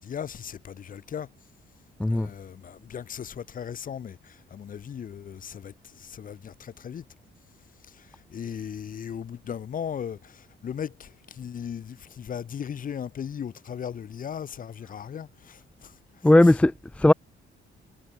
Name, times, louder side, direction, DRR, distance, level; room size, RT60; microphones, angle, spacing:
voice 1, 0.0-1.3 2.1-7.0 7.9-16.3, left 8 dB, 45° left, 5.5 m, -37 dB
voice 2, 16.2-17.1, left 1 dB, 5° left, 0.5 m, -18 dB
cardioid pair, 155°, 20 cm